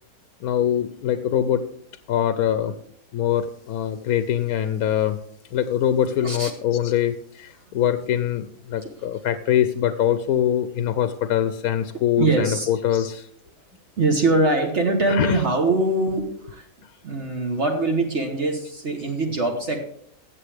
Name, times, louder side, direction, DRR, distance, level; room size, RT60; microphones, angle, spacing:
voice 1, 0.4-1.6 2.1-2.7 3.1-5.2 5.5-13.3 15.1-15.4, left 10 dB, 80° left, 10 dB, 1.1 m, -23 dB
voice 2, 12.2-12.7 14.0-16.7 17.0-19.8, right 2 dB, 50° right, 3 dB, 1.5 m, -23 dB
16.0 x 7.1 x 3.5 m, 0.70 s
omnidirectional pair, 1.6 m